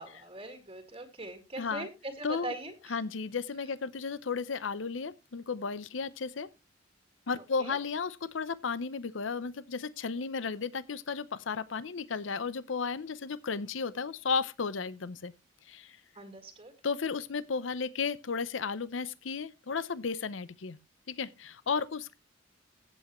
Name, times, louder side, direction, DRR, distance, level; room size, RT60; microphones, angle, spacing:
voice 1, 0.0-3.0 7.3-7.8 16.2-16.7, right 1 dB, 30° right, 1.9 m, -42 dB
voice 2, 1.6-1.9 2.2-2.5 2.9-6.5 7.3-15.3 15.7-16.0 16.8-20.8 21.1-22.2, left 5 dB, 80° left, 0.7 m, -34 dB
15.0 x 8.2 x 3.0 m
head